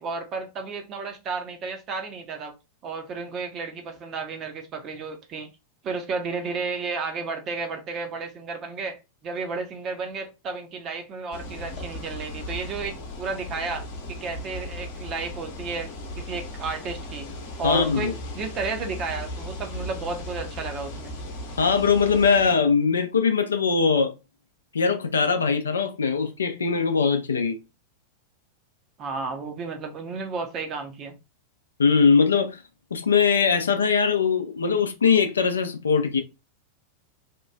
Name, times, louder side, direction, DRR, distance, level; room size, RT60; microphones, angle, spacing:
voice 1, 0.0-2.5 2.8-5.5 5.8-15.9 16.2-17.3 17.6-21.1 29.0-31.1, right 4 dB, 30° right, 0.6 m, -32 dB
sound 1, 11.3-22.5, left 1 dB, 55° left, 0.8 m, -37 dB
voice 2, 17.6-18.1 21.6-24.1 24.7-27.6 31.8-32.6 32.9-36.2, left 5 dB, 70° left, 0.4 m, -21 dB
2.9 x 2.3 x 2.2 m
figure-of-eight pair, 90°, 0 cm